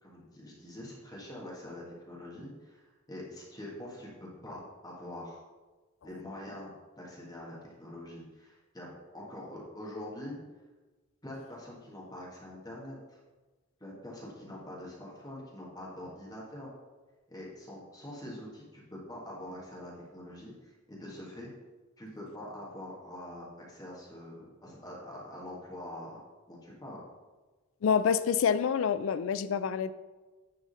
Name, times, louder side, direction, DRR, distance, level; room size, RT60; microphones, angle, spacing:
voice 1, 0.0-5.4 6.0-6.7 7.0-10.4 11.2-13.2 13.8-16.7 17.3-21.5 22.0-26.2 26.5-27.0, left 1 dB, 20° left, -5 dB, 1.6 m, -44 dB
voice 2, 27.8-29.9, left 7 dB, 70° left, 14 dB, 0.3 m, -27 dB
9.6 x 3.8 x 4.0 m, 1.2 s
head